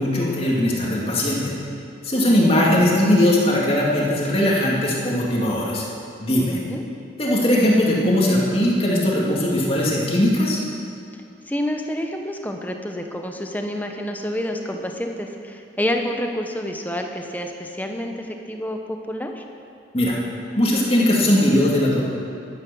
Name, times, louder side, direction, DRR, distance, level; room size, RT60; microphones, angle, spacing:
voice 1, 0.0-1.4 2.0-5.8 6.2-6.6 7.2-10.6 19.9-20.2 20.6-22.0, left 1 dB, 30° left, -4 dB, 2.5 m, -19 dB
voice 2, 2.3-2.7 6.5-6.8 11.5-19.4, equal, 10° left, 3 dB, 0.9 m, -28 dB
12.0 x 10.5 x 7.1 m, 2.5 s
head